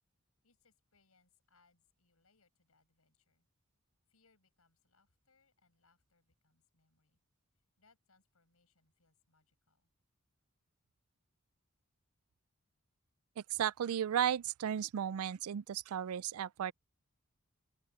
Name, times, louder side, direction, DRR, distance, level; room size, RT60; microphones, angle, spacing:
voice 1, 0.4-3.5 4.1-7.2 7.8-9.9, left 4 dB, 90° left, 6.0 m, -74 dB
voice 2, 13.4-16.7, right 9 dB, 85° right, 0.4 m, -34 dB
open air
head